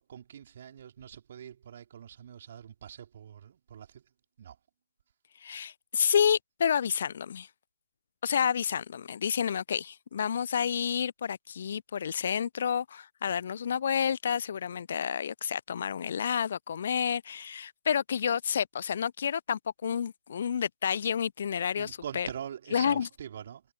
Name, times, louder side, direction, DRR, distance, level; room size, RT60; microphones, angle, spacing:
voice 1, 0.0-4.0 4.4-4.6 21.7-23.6, right 9 dB, 45° right, 3.5 m, -44 dB
voice 2, 5.4-7.5 8.2-22.3 22.7-23.1, left 8 dB, 50° left, 0.3 m, -29 dB
figure-of-eight pair, 135°, 0 cm